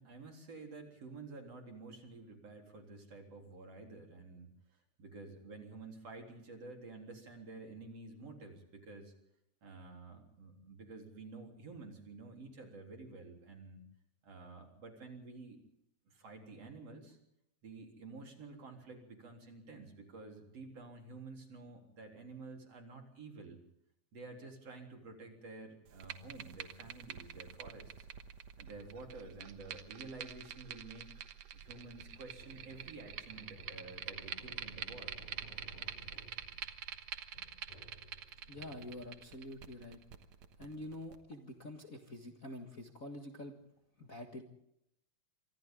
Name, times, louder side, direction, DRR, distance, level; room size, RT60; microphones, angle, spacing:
voice 1, 0.0-9.1 9.6-13.8 14.2-15.6 16.1-17.2 17.6-23.6 24.1-28.1 28.6-31.1 31.5-35.1, right 3 dB, 55° right, 2 dB, 4.8 m, -50 dB
sound 1, 25.9-41.2, right 9 dB, 70° right, 2.5 m, -47 dB
sound 2, 31.6-39.4, left 1 dB, 60° left, 6.6 m, -57 dB
voice 2, 38.5-40.0 40.6-43.6 44.0-44.4, left 1 dB, 35° left, 2 dB, 1.7 m, -47 dB
27.5 x 25.0 x 3.8 m, 0.80 s
omnidirectional pair, 3.4 m